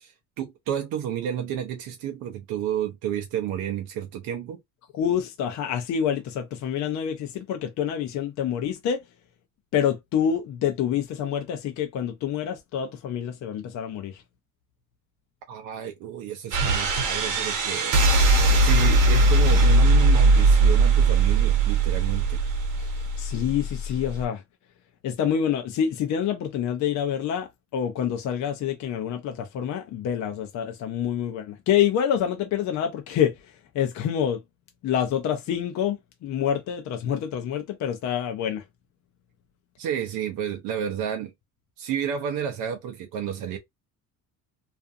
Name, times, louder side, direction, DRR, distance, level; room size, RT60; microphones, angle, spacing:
voice 1, 0.0-4.6 15.5-18.3 18.6-22.4 39.8-41.3 41.8-43.6, right 9 dB, 90° right, 0.6 m, -31 dB
voice 2, 4.9-9.0 9.7-14.2 22.8-22.9 23.2-24.4 25.0-33.3 33.7-34.4 34.8-38.6, left 9 dB, 60° left, 0.5 m, -27 dB
sound 1, 16.5-24.2, right 2 dB, 65° right, 0.9 m, -20 dB
2.5 x 2.4 x 2.5 m
cardioid pair, 125°, 33 cm